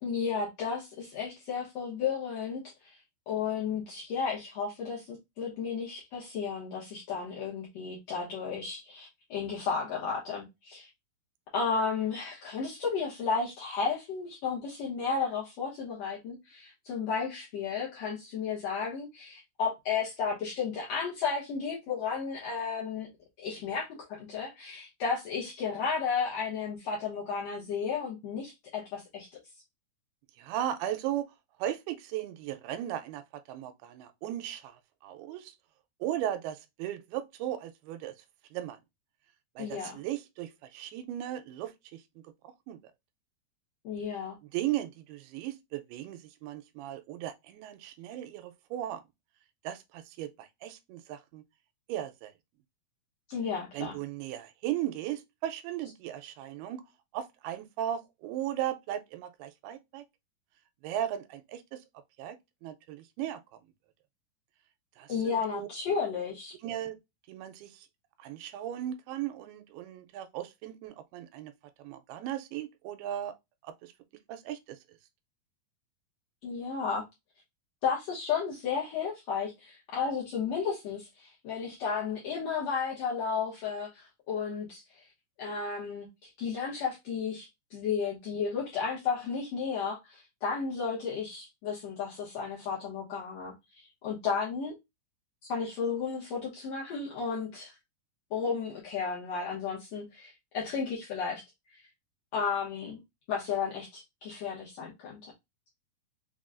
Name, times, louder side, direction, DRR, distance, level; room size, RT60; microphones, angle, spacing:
voice 1, 0.0-3.0 3.3-10.9 11.5-23.1 23.4-29.3 39.6-40.0 43.8-44.4 53.3-54.0 65.1-66.5 76.4-77.0 77.8-85.0 85.4-86.1 86.4-94.7 95.4-97.8 98.3-101.4 101.7-101.8 102.3-103.0 103.3-105.3, left 5 dB, 80° left, 1.4 m, -33 dB
voice 2, 30.4-31.3 31.6-34.8 35.0-35.5 36.0-38.1 38.5-38.8 39.6-42.0 42.7-42.8 44.5-49.0 49.6-51.4 51.9-52.3 53.7-56.8 57.1-60.0 60.8-61.8 62.2-62.4 62.6-63.4 65.0-65.7 66.6-67.0 67.3-67.8 68.2-71.5 71.8-73.3 73.6-73.9 74.3-74.8, right 12 dB, 85° right, 2.4 m, -36 dB
5.9 x 2.2 x 2.5 m
omnidirectional pair, 4.5 m